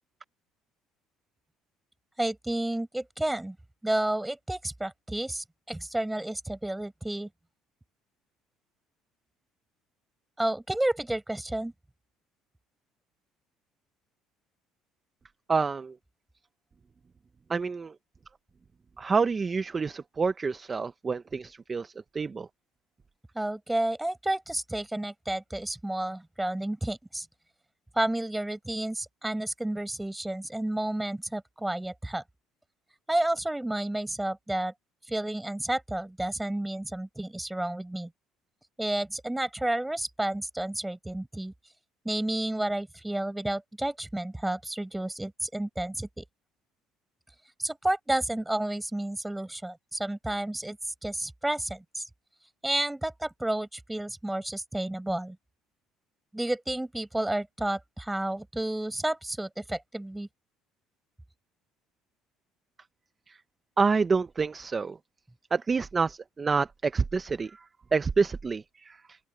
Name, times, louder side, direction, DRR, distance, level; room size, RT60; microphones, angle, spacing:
voice 1, 2.2-3.6 3.8-7.3 10.4-11.7 23.3-27.3 27.9-32.2 33.1-34.7 35.1-38.1 38.8-41.5 42.0-46.2 47.6-50.8 51.0-52.0 52.6-55.4 56.3-60.3, right 1 dB, 5° right, 5.0 m, -31 dB
voice 2, 15.5-15.9 17.5-17.9 19.0-22.5 63.8-64.9 65.5-67.5 67.9-68.6, right 4 dB, 25° right, 0.7 m, -27 dB
open air
cardioid pair, 130°, 0 cm